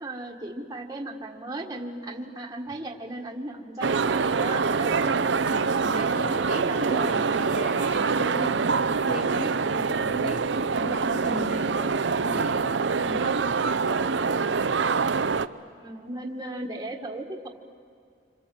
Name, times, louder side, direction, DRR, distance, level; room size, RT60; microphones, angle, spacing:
voice 1, 0.0-5.2 5.9-7.5 8.3-8.7 13.1-13.4 15.7-17.5, right 1 dB, 20° right, 0 dB, 1.6 m, -36 dB
sound 1, 3.8-15.5, right 5 dB, 75° right, 0.7 m, -25 dB
voice 2, 5.5-8.6 8.9-14.6, equal, 35° left, 1 dB, 3.2 m, -37 dB
27.0 x 26.0 x 7.6 m, 2.2 s
head